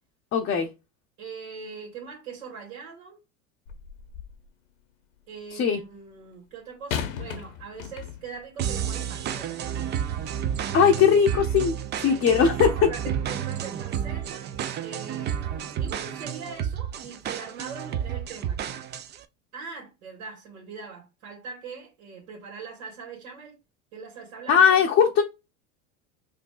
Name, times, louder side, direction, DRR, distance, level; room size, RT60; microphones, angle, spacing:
voice 1, 0.3-0.7 5.5-5.8 10.7-12.9 24.5-25.2, left 7 dB, 35° left, 0.7 m, -20 dB
voice 2, 1.2-3.2 5.3-10.0 12.1-14.5 14.8-18.8 19.5-23.6 23.9-25.1, right 5 dB, 75° right, 1.9 m, -42 dB
sound 1, 3.7-4.5 6.9-8.4 9.2-9.4, left 8 dB, 80° left, 0.9 m, -35 dB
sound 2, 8.6-19.2, right 9 dB, 30° right, 0.4 m, -31 dB
5.0 x 2.6 x 2.3 m
hypercardioid pair, 95°, 39 cm